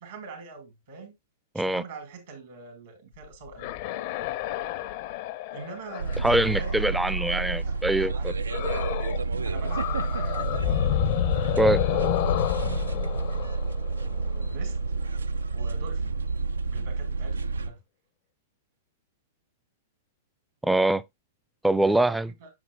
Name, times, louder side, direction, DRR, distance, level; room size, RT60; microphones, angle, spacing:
voice 1, 0.0-1.1 1.5-3.7 5.5-8.6 9.4-13.6 14.1-14.7 15.5-16.2 16.7-17.8 22.4-22.5, right 4 dB, 65° right, 2.2 m, -44 dB
sound 1, 3.2-7.4 8.5-9.3 9.5-14.4, left 14 dB, 50° left, 0.5 m, -30 dB
sound 2, 6.0-17.7, right 3 dB, 80° right, 0.3 m, -29 dB
voice 2, 6.2-8.3 11.6-11.8 20.6-21.0 21.6-22.3, right 1 dB, 5° right, 0.4 m, -23 dB
7.2 x 6.0 x 2.2 m
figure-of-eight pair, 105°, 0 cm